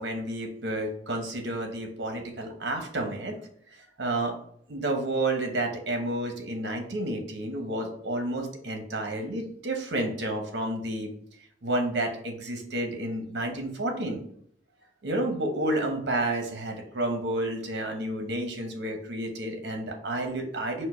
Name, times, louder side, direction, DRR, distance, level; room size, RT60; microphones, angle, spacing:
voice 1, 0.0-3.4 3.8-4.4 4.7-11.1 11.6-14.2 15.0-20.8, right 1 dB, 65° right, 3 dB, 0.9 m, -30 dB
4.4 x 2.1 x 4.3 m, 0.66 s
head